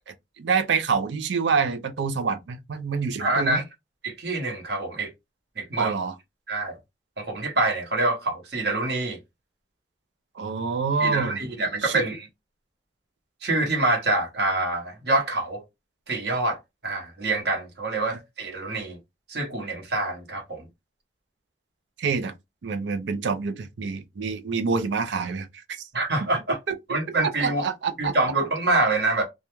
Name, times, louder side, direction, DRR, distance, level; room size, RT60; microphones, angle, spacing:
voice 1, 0.1-3.6 5.8-6.1 10.4-11.4 11.8-12.0 22.0-22.3 22.6-25.5 26.7-26.8 27.2-28.1, right 5 dB, 85° right, 0.5 m, -26 dB
voice 2, 3.2-3.6 4.0-5.1 5.6-5.9 6.5-6.8 7.2-9.2 11.0-12.3 13.4-15.6 16.1-19.0 19.3-20.7 25.9-26.6 26.9-27.6 28.0-29.2, right 2 dB, 65° right, 0.9 m, -26 dB
2.3 x 2.1 x 2.9 m
head